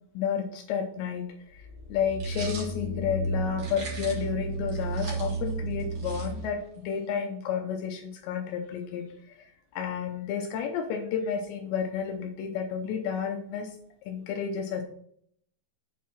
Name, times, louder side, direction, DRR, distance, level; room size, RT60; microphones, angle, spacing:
voice 1, 0.1-1.2 1.5-13.8 14.0-14.8, left 7 dB, 80° left, 4 dB, 2.7 m, -31 dB
sound 1, 1.5-6.6, right 2 dB, 75° right, 4.2 m, -33 dB
sound 2, 2.2-2.7 3.6-4.3 4.7-6.7, right 3 dB, 50° right, 1.8 m, -42 dB
8.3 x 4.7 x 5.7 m, 0.67 s
omnidirectional pair, 5.7 m